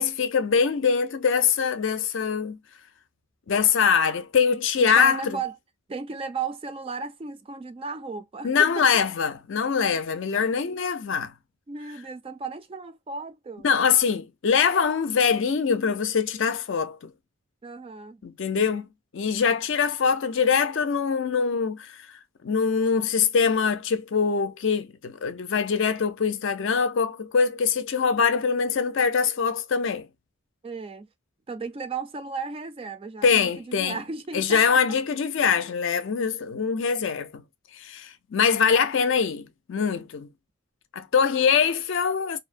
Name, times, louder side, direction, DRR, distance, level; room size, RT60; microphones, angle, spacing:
voice 1, 0.0-2.6 3.5-5.4 8.4-11.3 13.6-17.0 18.2-18.9 19.1-22.0 22.4-30.1 33.2-34.0 34.3-37.4 37.8-40.3 40.9-42.4, left 6 dB, 60° left, 0.4 m, -23 dB
voice 2, 4.8-5.6 5.9-8.9 11.7-13.7 17.6-18.2 30.6-31.1 31.5-35.0, right 5 dB, 25° right, 0.3 m, -35 dB
2.6 x 2.0 x 2.4 m
head